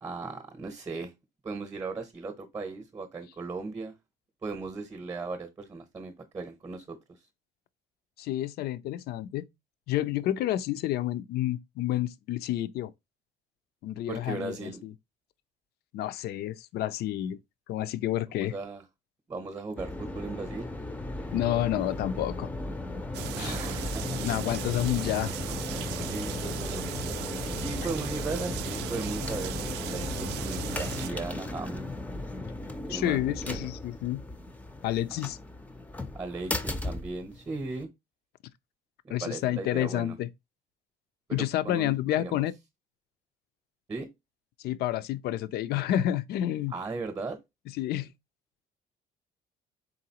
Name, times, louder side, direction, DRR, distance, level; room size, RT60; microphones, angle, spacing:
voice 1, 0.0-1.1 1.4-3.9 4.4-7.0 14.1-14.8 18.4-18.8 19.3-20.7 23.4-24.2 26.1-27.2 27.5-31.9 32.9-33.7 36.1-37.9 39.0-40.2 41.3-42.4 43.9-44.1 46.7-47.4, right 3 dB, 20° right, 0.8 m, -37 dB
voice 2, 8.2-9.5 9.9-12.9 13.8-14.9 15.9-17.4 17.7-18.5 21.3-22.5 23.4-23.6 24.2-25.3 32.9-34.2 34.8-35.4 39.1-40.3 41.3-42.5 44.6-46.7 47.7-48.1, left 13 dB, 70° left, 0.4 m, -29 dB
sound 1, 19.8-37.8, left 2 dB, 10° left, 0.5 m, -36 dB
sound 2, 23.1-31.1, right 13 dB, 90° right, 0.4 m, -38 dB
3.9 x 3.8 x 2.8 m
cardioid pair, 110°, 17 cm